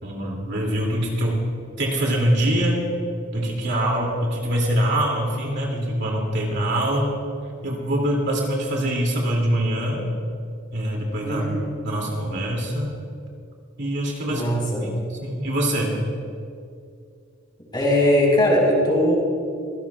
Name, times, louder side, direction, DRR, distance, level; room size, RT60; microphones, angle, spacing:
voice 1, 0.0-1.4 1.8-2.9 3.3-7.2 7.6-10.0 10.7-11.4 11.8-12.9 13.8-14.4 14.8-14.9 15.2-16.0, right 1 dB, 60° right, -1 dB, 2.7 m, -24 dB
voice 2, 11.2-11.6 14.3-14.9 17.7-19.2, left 1 dB, 25° left, -3 dB, 4.6 m, -20 dB
25.0 x 16.5 x 2.4 m, 2.4 s
head